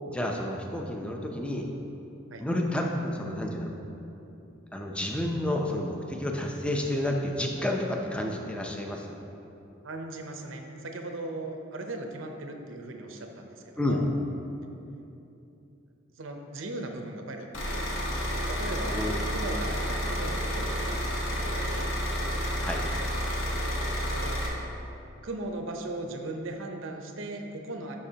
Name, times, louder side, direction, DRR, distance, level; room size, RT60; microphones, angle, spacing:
voice 1, 0.1-1.7 2.4-3.7 4.7-9.1 13.8-14.0 18.9-19.2 22.6-22.8, left 1 dB, 5° left, 1 dB, 0.5 m, -30 dB
voice 2, 9.8-14.0 16.2-18.1 18.5-22.0 24.1-24.4 25.2-28.0, right 2 dB, 65° right, 4 dB, 0.7 m, -38 dB
sound 1, 17.5-24.5, equal, 70° left, 1.4 m, -30 dB
12.0 x 5.2 x 2.8 m, 2.8 s
head